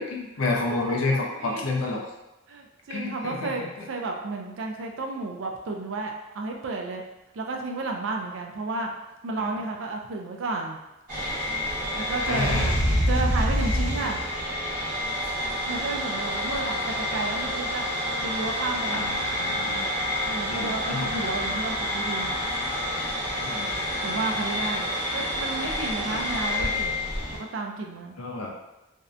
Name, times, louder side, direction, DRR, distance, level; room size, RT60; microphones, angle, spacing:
voice 1, 0.0-2.0 2.9-3.9 9.3-9.6 12.3-12.7 15.2-15.6 18.9-19.9 20.5-21.1 23.4-23.8 26.1-26.2 26.6-26.7 28.2-28.5, left 3 dB, 90° left, -1 dB, 0.5 m, -30 dB
voice 2, 0.7-1.6 2.5-7.0 7.3-8.9 9.2-10.8 12.0-12.8 13.1-14.2 15.4-17.9 18.2-19.1 20.3-22.4 24.0-27.1 27.4-28.2, right 3 dB, 70° right, 2 dB, 0.4 m, -32 dB
sound 1, 11.1-27.4, left 1 dB, 45° right, 0.9 m, -28 dB
2.6 x 2.1 x 2.5 m, 0.97 s
head